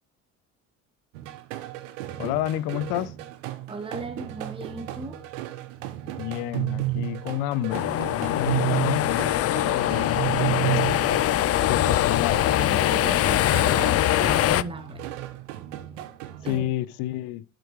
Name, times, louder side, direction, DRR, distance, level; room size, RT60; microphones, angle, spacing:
sound 1, 1.1-16.7, right 16 dB, 90° right, 1.0 m, -33 dB
voice 1, 2.2-3.1 6.2-10.9 11.7-12.4 16.4-17.4, left 14 dB, 75° left, 0.7 m, -30 dB
voice 2, 3.7-5.3 12.7-15.0 16.4-16.6, right 3 dB, 15° right, 1.1 m, -37 dB
sound 2, 7.7-14.6, left 13 dB, 40° left, 0.4 m, -23 dB
12.0 x 5.1 x 3.2 m
supercardioid pair, 75°, 37 cm